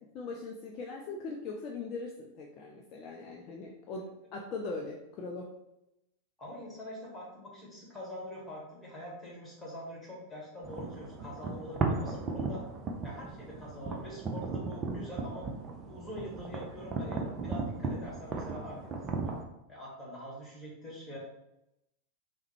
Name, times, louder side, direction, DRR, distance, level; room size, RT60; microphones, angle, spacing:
voice 1, 0.1-5.5, left 3 dB, 35° left, 0 dB, 0.4 m, -40 dB
voice 2, 6.4-12.6 13.0-15.5 15.8-19.3 19.7-21.2, equal, 10° left, -5 dB, 1.4 m, -44 dB
sound 1, 10.6-19.4, right 3 dB, 25° right, 0.5 m, -36 dB
3.3 x 2.1 x 3.3 m, 0.87 s
figure-of-eight pair, 90°, 0 cm